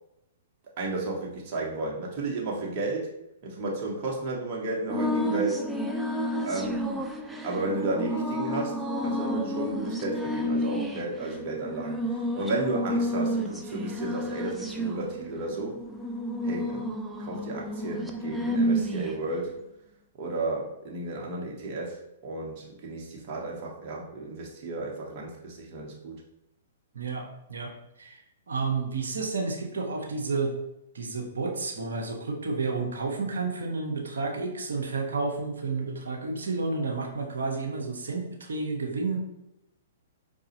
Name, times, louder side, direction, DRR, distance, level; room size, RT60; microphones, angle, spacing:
voice 1, 0.8-3.1 3.4-5.6 6.4-6.8 7.4-15.8 16.4-16.9 17.2-19.6 20.2-22.0 22.2-26.2, right 2 dB, 45° right, -2 dB, 1.0 m, -33 dB
sound 1, 4.9-19.3, equal, 5° right, 0.4 m, -30 dB
voice 2, 26.9-27.7 28.0-30.6 30.9-39.2, right 4 dB, 75° right, 0 dB, 0.8 m, -31 dB
4.9 x 2.3 x 2.9 m, 0.87 s
hypercardioid pair, 115°, 0 cm